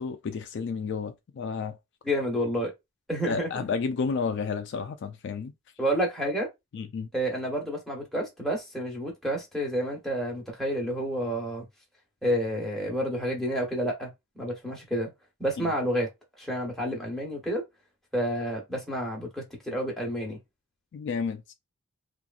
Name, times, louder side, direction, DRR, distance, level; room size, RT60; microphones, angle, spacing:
voice 1, 0.0-1.8 3.3-5.5 6.7-7.1 15.6-15.7 20.9-21.4, left 5 dB, 55° left, 0.3 m, -31 dB
voice 2, 2.0-2.7 3.1-3.6 5.8-6.5 7.1-11.6 12.2-14.1 14.3-15.1 15.4-16.1 16.4-17.6 18.1-20.4, equal, ahead, 1.0 m, -29 dB
2.8 x 2.5 x 2.4 m
head